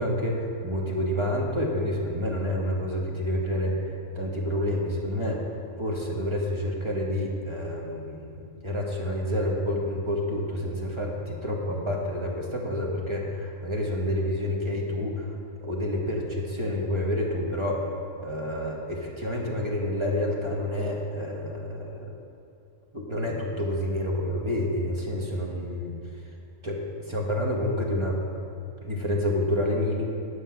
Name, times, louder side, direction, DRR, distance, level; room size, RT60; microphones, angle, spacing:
voice 1, 0.0-5.4 5.8-15.3 15.6-17.9 18.1-22.1 22.9-25.9 26.6-28.2 28.8-30.1, left 1 dB, 25° right, -2 dB, 1.1 m, -28 dB
10.0 x 6.4 x 5.6 m, 2.7 s
omnidirectional pair, 1.4 m